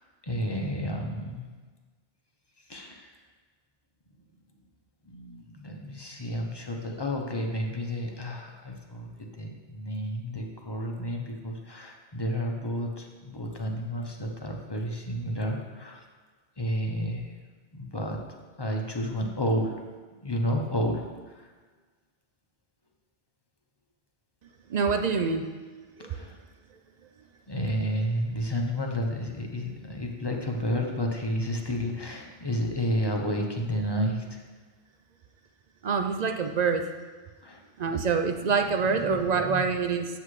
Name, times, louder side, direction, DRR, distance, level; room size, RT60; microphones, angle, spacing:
voice 1, 0.2-1.5 2.7-3.2 5.0-16.0 16.6-17.3 17.7-18.2 18.6-19.8 20.2-21.5 26.0-26.4 27.5-34.4 37.4-37.6 37.9-38.0 38.8-39.7, equal, 25° left, 2 dB, 0.7 m, -31 dB
voice 2, 24.7-25.4 26.0-26.2 35.8-36.9 37.8-40.1, right 5 dB, 60° right, 7 dB, 0.4 m, -26 dB
8.5 x 7.9 x 3.2 m, 1.4 s
omnidirectional pair, 1.2 m